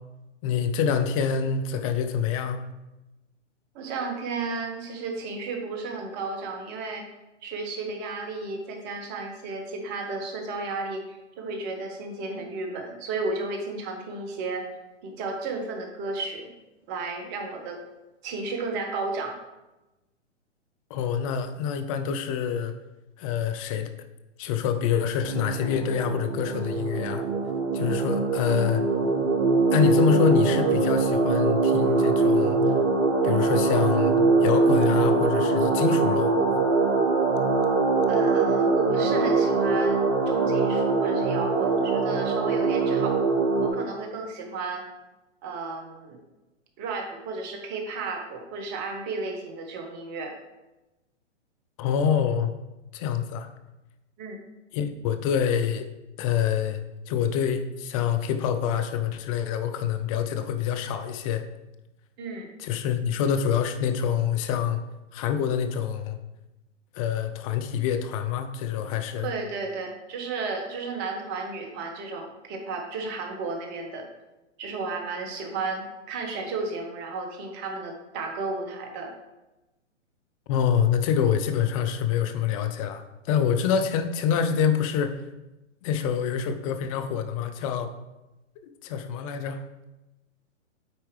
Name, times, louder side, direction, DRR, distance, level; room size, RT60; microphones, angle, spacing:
voice 1, 0.4-2.6 20.9-22.7 23.2-23.9 24.4-27.3 27.7-28.8 29.7-32.6 33.2-36.3 51.8-52.5 52.9-53.5 54.7-55.9 56.2-56.8 57.1-61.4 62.6-64.8 65.1-66.2 66.9-69.3 80.5-85.2 85.8-87.9 88.6-89.6, left 8 dB, 30° left, 8 dB, 0.5 m, -26 dB
voice 2, 3.7-7.0 7.4-14.7 15.0-16.5 16.9-17.8 18.2-19.4 38.1-43.2 43.6-44.8 45.4-46.2 46.8-50.3 54.2-54.4 62.2-62.5 69.2-74.1 74.6-79.1, right 3 dB, 30° right, 3 dB, 1.2 m, -33 dB
sound 1, 25.2-43.7, right 3 dB, 50° right, 1.2 m, -23 dB
8.5 x 4.4 x 3.3 m, 1.0 s
hypercardioid pair, 125°, 37 cm